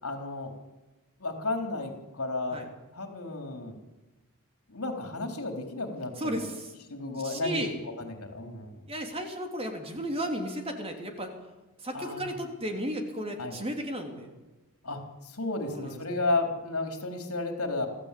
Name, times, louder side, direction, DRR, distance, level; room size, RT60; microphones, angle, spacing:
voice 1, 0.0-0.5 1.2-2.6 2.9-3.8 4.7-6.5 6.9-7.6 8.0-8.9 11.9-12.4 13.4-13.6 14.8-17.9, left 2 dB, 75° left, 4 dB, 3.8 m, -33 dB
voice 2, 7.1-7.7 8.9-11.3 11.8-14.3 15.7-16.0, equal, 25° right, 3 dB, 3.2 m, -34 dB
25.5 x 15.0 x 8.5 m, 1.1 s
head